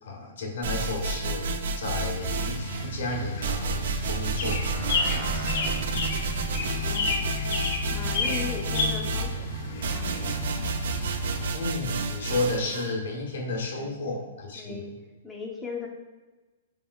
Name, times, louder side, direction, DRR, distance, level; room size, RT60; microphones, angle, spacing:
voice 1, 0.0-4.7 5.0-5.5 11.5-14.9, left 2 dB, 75° left, 0 dB, 1.0 m, -32 dB
sound 1, 0.6-2.9 3.4-12.9, right 2 dB, 70° right, 0.4 m, -31 dB
sound 2, 2.2-11.5, left 2 dB, 55° left, 0.6 m, -31 dB
sound 3, 4.3-9.0, right 3 dB, 40° right, 1.0 m, -42 dB
voice 2, 6.8-7.3 7.9-10.5 13.8-13.9 14.1-14.2 14.6-14.9 15.2-15.9, left 4 dB, 10° left, -2 dB, 0.5 m, -38 dB
4.7 x 3.5 x 2.3 m, 1.3 s
hypercardioid pair, 145°, 0 cm